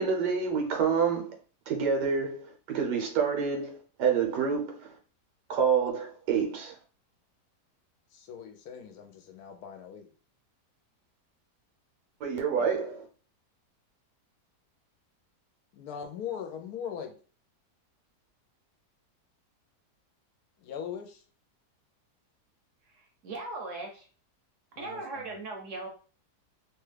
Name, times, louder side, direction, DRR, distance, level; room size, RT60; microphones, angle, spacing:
voice 1, 0.0-1.3 1.7-4.9 5.5-6.7 12.2-13.1, right 6 dB, 85° right, 1.4 m, -28 dB
voice 2, 8.1-10.1 15.8-17.1 20.6-21.2 24.8-25.4, left 8 dB, 75° left, 1.0 m, -40 dB
voice 3, 22.9-24.1 24.8-25.9, right 3 dB, 60° right, 0.9 m, -39 dB
3.0 x 2.3 x 3.2 m
omnidirectional pair, 1.8 m